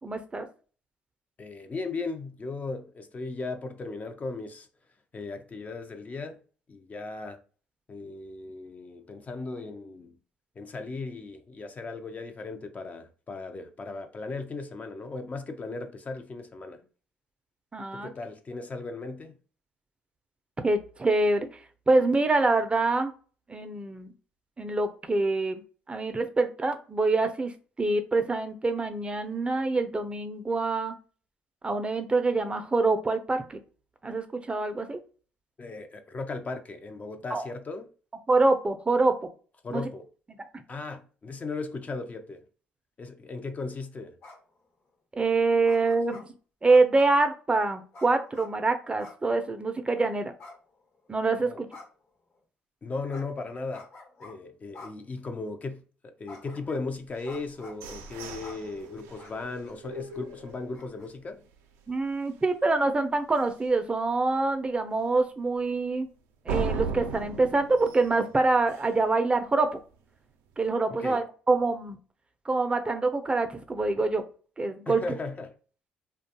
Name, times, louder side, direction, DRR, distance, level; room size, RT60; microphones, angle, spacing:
voice 1, 0.0-0.5 17.7-18.1 20.6-21.5 21.9-23.1 23.5-24.1 24.6-25.6 25.9-27.5 27.8-30.9 31.6-33.6 34.0-35.0 37.3-37.4 38.3-39.2 39.7-39.9 45.1-46.3 46.6-50.3 51.1-51.7 61.9-66.1 66.5-69.8 70.6-72.0 72.5-74.2 74.6-75.2, right 3 dB, 25° right, 0.4 m, -25 dB
voice 2, 1.4-4.7 5.1-6.4 6.7-7.4 7.9-10.2 10.6-16.8 17.9-19.3 35.6-37.9 39.6-40.1 40.7-42.4 43.0-44.2 51.4-51.6 52.8-53.9 54.2-61.5 71.0-71.2 74.9-75.5, left 3 dB, 35° left, 0.4 m, -37 dB
sound 1, 44.2-44.6 45.6-46.2 46.7-47.2 47.9-48.5 49.0-49.2 49.5-49.6 50.4-51.1 51.7-52.1 53.1-53.2 53.7-54.3 54.7-54.9 55.4-55.5 56.3-56.8 57.2-57.8 58.4-58.6 59.2-59.3 59.6-59.7 60.1-60.2 60.7-61.1, left 3 dB, 55° left, 1.1 m, -47 dB
sound 2, 57.2-61.1 61.5-61.6 62.0-62.4 62.8-62.9 63.4-63.5 66.5-69.1, right 4 dB, 85° right, 0.4 m, -37 dB
2.3 x 2.2 x 2.7 m
supercardioid pair, 60°, 4 cm